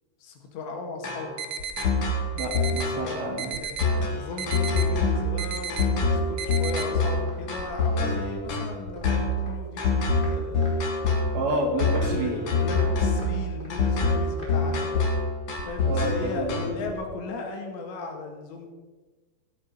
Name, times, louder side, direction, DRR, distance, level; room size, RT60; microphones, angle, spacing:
voice 1, 0.2-1.4 3.0-3.1 3.6-10.7 12.0-14.9 15.7-18.7, left 3 dB, 80° left, 2 dB, 4.1 m, -37 dB
sound 1, 1.0-16.9, left 3 dB, 45° left, 1.9 m, -25 dB
Timer alarm detector bleeping beeping, 1.4-1.9 2.4-2.9 3.4-3.9 4.4-4.9 5.4-5.9 6.4-6.9, right 6 dB, 80° right, 1.8 m, -33 dB
voice 2, 2.3-3.6 11.3-12.4 15.8-16.7, right 1 dB, 60° right, 1 dB, 3.7 m, -29 dB
sound 2, 3.9-4.0 4.3-4.4 4.7-4.9 5.2-5.3 5.6-5.7 6.0-6.6 6.9-7.0 7.3-7.4 7.7-7.8 8.1-8.2 8.5-9.5 9.8-9.9 10.2-10.3 10.6-11.2 11.5-11.6 11.9-12.1 12.3-12.5 12.8-13.3 13.6-13.7 14.0-14.9 15.1-15.2, left 1 dB, 15° left, 3.0 m, -46 dB
15.0 x 8.5 x 5.6 m, 1.3 s
omnidirectional pair, 5.1 m